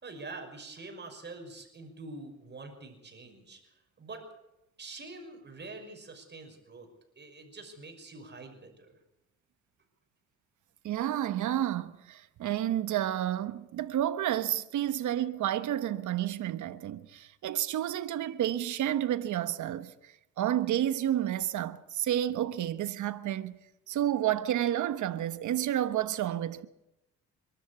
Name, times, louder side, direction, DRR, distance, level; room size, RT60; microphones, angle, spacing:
voice 1, 0.0-4.3 4.8-6.9 7.2-9.0, right 3 dB, 35° right, 5.9 m, -45 dB
voice 2, 10.8-23.6 23.9-26.7, right 12 dB, 75° right, 1.3 m, -30 dB
26.5 x 12.5 x 8.5 m
cardioid pair, 90°, 30 cm